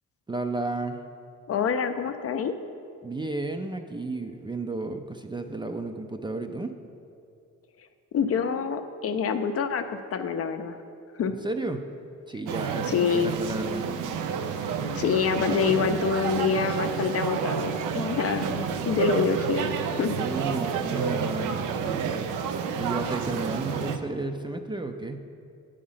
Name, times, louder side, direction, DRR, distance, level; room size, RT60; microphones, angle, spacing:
voice 1, 0.3-1.0 3.0-6.8 11.4-11.8 12.3-13.9 20.1-22.3 22.8-25.2, right 2 dB, 15° right, 6 dB, 0.4 m, -33 dB
voice 2, 1.5-2.5 8.1-10.8 11.2-11.3 12.9-13.4 15.0-20.2, left 6 dB, 50° left, 8 dB, 0.5 m, -26 dB
sound 1, 12.5-24.0, right 6 dB, 90° right, 0.6 m, -29 dB
8.5 x 5.0 x 5.6 m, 2.5 s
cardioid pair, 90°, 30 cm